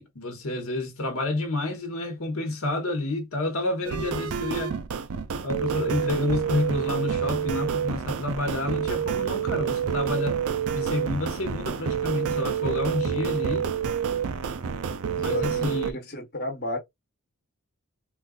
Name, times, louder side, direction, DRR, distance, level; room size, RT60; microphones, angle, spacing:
voice 1, 0.0-4.8 5.4-10.4 10.7-13.7 15.2-16.0, left 2 dB, 70° left, 1.1 m, -29 dB
sound 1, 3.8-15.9, right 7 dB, 75° right, 0.4 m, -28 dB
voice 2, 15.2-16.8, left 1 dB, 45° left, 1.0 m, -33 dB
3.9 x 2.4 x 2.3 m
head